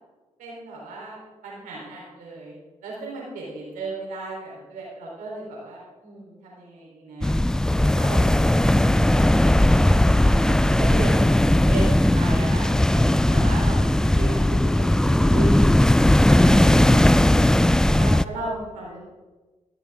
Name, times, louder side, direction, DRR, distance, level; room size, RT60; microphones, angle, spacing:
voice 1, 0.4-7.3 7.9-8.5 8.9-9.3 9.6-11.4 11.7-13.8 14.1-15.7 17.9-19.0, right 2 dB, 90° right, -3 dB, 3.7 m, -35 dB
sound 1, 7.2-18.2, left 1 dB, 5° left, 0.3 m, -18 dB
voice 2, 16.2-18.0 18.3-18.4 18.8-19.0, left 4 dB, 45° left, -2 dB, 3.2 m, -39 dB
15.0 x 6.8 x 3.6 m, 1.2 s
supercardioid pair, 55°, 13 cm